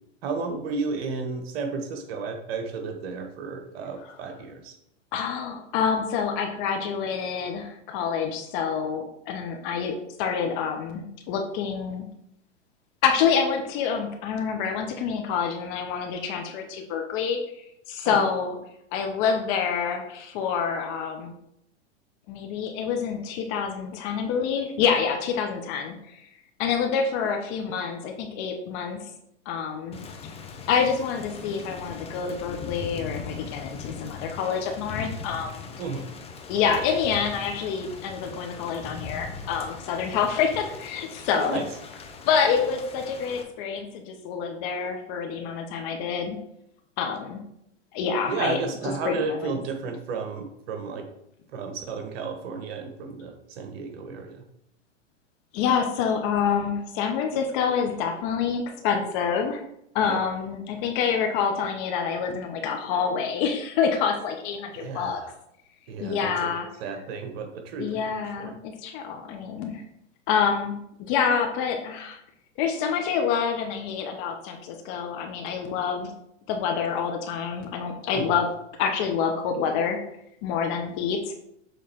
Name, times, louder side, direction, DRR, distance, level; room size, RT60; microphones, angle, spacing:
voice 1, 0.2-4.7 18.0-18.2 35.8-36.0 41.3-41.7 48.3-51.1 51.5-54.4 60.0-60.2 64.7-65.3 65.9-66.5 66.8-68.5 78.1-78.3, right 4 dB, 55° right, 5 dB, 1.2 m, -33 dB
voice 2, 5.1-12.0 13.0-17.4 17.9-18.6 18.9-21.3 22.3-26.2 26.6-29.0 29.5-30.0 30.7-35.7 36.5-41.6 42.3-46.4 47.0-47.4 47.9-48.6 49.0-49.6 55.5-59.6 59.9-65.2 66.0-66.7 67.8-69.8 70.3-70.7 71.0-72.2 72.6-76.1 76.5-78.5 78.8-80.0 80.4-81.2, left 6 dB, 45° left, 4 dB, 0.9 m, -27 dB
Thunder / Rain, 29.9-43.4, left 5 dB, 15° left, 0.7 m, -40 dB
7.6 x 3.4 x 4.4 m, 0.78 s
hypercardioid pair, 110°, 36 cm